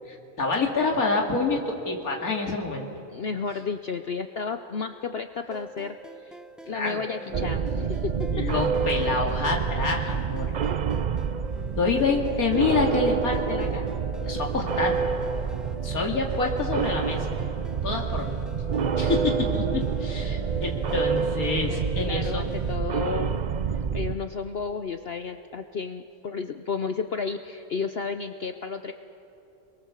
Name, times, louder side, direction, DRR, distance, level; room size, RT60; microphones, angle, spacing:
voice 1, 0.1-2.9 6.7-7.0 8.3-10.5 11.8-13.8 14.2-15.0 15.8-17.3 17.8-18.4 19.0-22.5, left 3 dB, 80° left, 0 dB, 2.8 m, -27 dB
voice 2, 3.1-6.3 6.7-8.4 22.1-28.9, left 5 dB, 50° left, 8 dB, 0.8 m, -32 dB
sound 1, 5.5-22.8, right 1 dB, ahead, 0.8 m, -42 dB
sound 2, 7.3-24.2, right 6 dB, 55° right, 0.5 m, -28 dB
29.5 x 23.0 x 7.3 m, 3.0 s
omnidirectional pair, 1.5 m